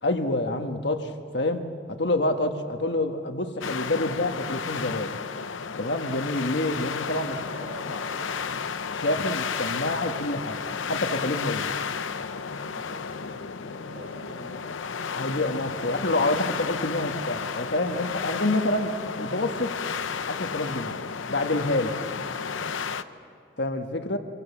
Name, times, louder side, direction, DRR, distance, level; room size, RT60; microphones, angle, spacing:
voice 1, 0.0-5.2 5.8-7.3 8.9-11.8 15.1-19.7 20.3-21.0 21.3-21.9 23.6-24.2, left 2 dB, 60° left, 5 dB, 1.5 m, -27 dB
sound 1, 3.6-23.0, left 6 dB, 90° left, 0.7 m, -33 dB
voice 2, 7.1-8.6 12.5-14.9 22.5-22.9, equal, 70° right, -7 dB, 5.7 m, -45 dB
25.0 x 23.0 x 7.3 m, 2.4 s
head